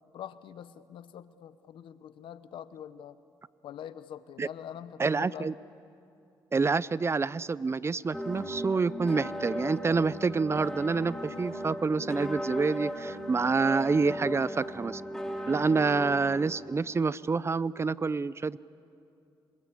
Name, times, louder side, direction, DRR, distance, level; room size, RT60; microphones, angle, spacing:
voice 1, 0.0-3.2 3.6-5.5, left 9 dB, 85° left, 14 dB, 0.8 m, -44 dB
voice 2, 5.0-5.5 6.5-15.0 15.5-18.6, right 4 dB, 30° right, 19 dB, 0.5 m, -27 dB
sound 1, 8.1-16.5, equal, 5° left, 3.0 m, -37 dB
26.5 x 21.0 x 8.4 m, 2.6 s
cardioid pair, 75°, 8 cm